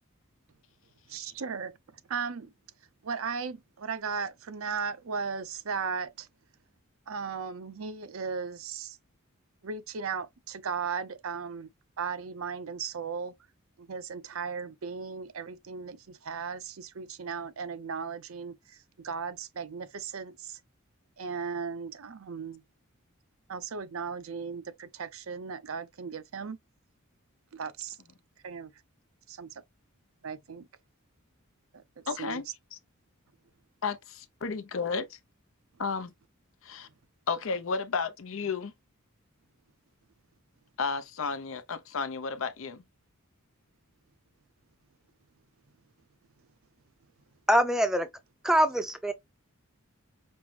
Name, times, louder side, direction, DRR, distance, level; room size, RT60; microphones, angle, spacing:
voice 1, 1.1-2.5 3.0-6.3 7.1-9.0 9.6-11.7 12.0-13.3 13.8-20.6 21.2-22.6 23.5-26.6 27.5-28.0 28.4-28.7 29.3-29.6 30.2-30.7 31.7-32.4, right 5 dB, 75° right, 0.6 m, -36 dB
voice 2, 32.1-32.5 33.8-35.2 35.8-36.1 36.6-36.9 37.3-38.7 40.8-42.8, left 5 dB, 65° left, 0.6 m, -32 dB
voice 3, 47.5-48.1 48.4-49.1, equal, 5° right, 0.5 m, -24 dB
5.3 x 2.1 x 3.1 m
head